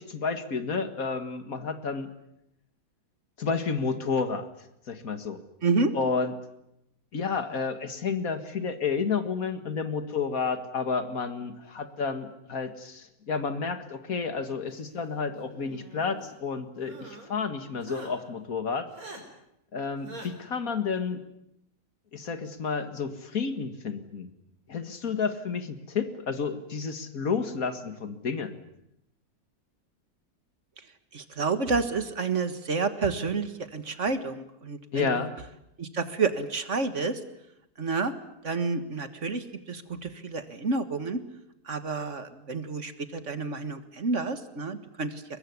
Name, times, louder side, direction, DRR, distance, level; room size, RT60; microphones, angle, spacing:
voice 1, 0.0-2.1 3.4-4.5 4.9-5.4 5.9-6.3 7.1-18.9 19.7-21.2 22.1-24.3 24.7-28.6 34.9-35.3, left 5 dB, 75° left, 10 dB, 2.3 m, -31 dB
voice 2, 5.6-5.9 31.1-35.3 35.8-37.2 37.8-38.1 38.4-41.2 41.7-45.4, right 4 dB, 55° right, 10 dB, 2.0 m, -29 dB
sound 1, 15.4-16.3 16.8-17.3 17.8-18.1 18.9-19.2 20.0-20.3, right 2 dB, 70° right, 5.1 m, -44 dB
23.5 x 21.0 x 9.7 m, 0.82 s
omnidirectional pair, 1.5 m